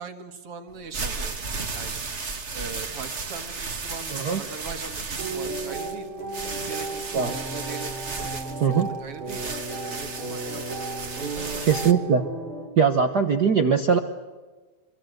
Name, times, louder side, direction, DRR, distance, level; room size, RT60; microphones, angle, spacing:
voice 1, 0.0-1.3 1.7-2.0 2.5-6.1 6.5-9.4 9.8-10.7 11.1-11.9, right 5 dB, 50° right, 7 dB, 2.6 m, -40 dB
sound 1, 0.7-11.9, right 4 dB, 35° right, 1.1 m, -34 dB
sound 2, 5.2-12.7, right 3 dB, 85° right, 7.3 m, -34 dB
voice 2, 11.6-12.2 12.8-14.0, right 6 dB, 70° right, 7 dB, 0.9 m, -21 dB
25.5 x 24.0 x 8.0 m, 1.4 s
omnidirectional pair, 3.5 m